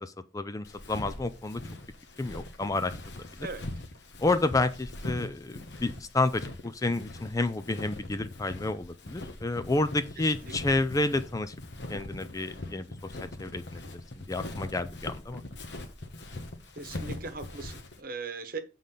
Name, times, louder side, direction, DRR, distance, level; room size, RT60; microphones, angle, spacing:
voice 1, 0.0-1.6 2.2-3.0 3.4-3.5 4.2-11.5 11.9-12.9 13.4-13.8 14.2-15.4, left 2 dB, 20° left, 0.4 m, -30 dB
Walk footsteps, 0.7-18.0, left 1 dB, 70° left, 1.1 m, -41 dB
voice 2, 10.2-10.7 16.7-18.6, right 4 dB, 50° right, 1.1 m, -40 dB
7.3 x 3.9 x 6.6 m
head